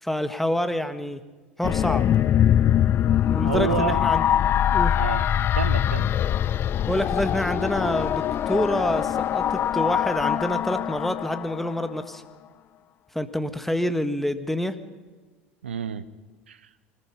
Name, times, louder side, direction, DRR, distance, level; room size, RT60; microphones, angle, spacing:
voice 1, 0.0-1.2 1.6-2.1 3.3-4.2 4.7-4.9 6.9-12.2 13.1-14.7, left 1 dB, 5° left, 10 dB, 1.7 m, -27 dB
sound 1, 1.6-12.0, left 10 dB, 35° left, 0.5 m, -23 dB
voice 2, 3.4-4.0 5.0-5.3 5.5-6.1 15.6-16.0 16.5-16.7, right 7 dB, 80° right, 15 dB, 1.0 m, -28 dB
24.5 x 20.5 x 5.5 m, 1.3 s
figure-of-eight pair, 70°, 6 cm